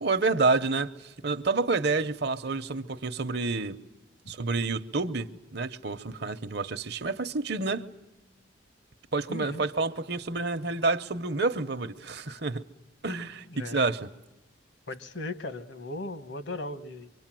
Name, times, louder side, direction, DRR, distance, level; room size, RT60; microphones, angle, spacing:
voice 1, 0.0-3.8 4.3-7.9 9.1-12.6 13.0-14.1, right 3 dB, 55° right, 0.9 m, -29 dB
voice 2, 9.3-9.7 13.5-13.8 14.9-17.1, left 2 dB, 65° left, 1.3 m, -37 dB
25.5 x 24.5 x 7.6 m
head